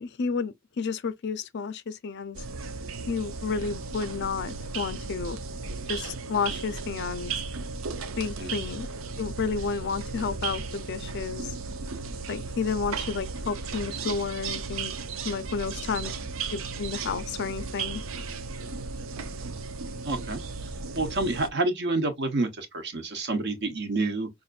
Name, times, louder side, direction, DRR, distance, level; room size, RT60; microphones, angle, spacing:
voice 1, 0.0-2.4 3.1-5.4 5.9-7.3 8.2-8.9 9.2-11.5 12.3-14.9 15.2-16.1 16.5-18.0, left 5 dB, 55° left, 0.5 m, -31 dB
sound 1, 2.3-21.5, right 4 dB, 75° right, 0.6 m, -35 dB
voice 2, 20.0-20.4 20.9-24.3, right 2 dB, 55° right, 1.0 m, -28 dB
5.7 x 2.5 x 2.4 m
head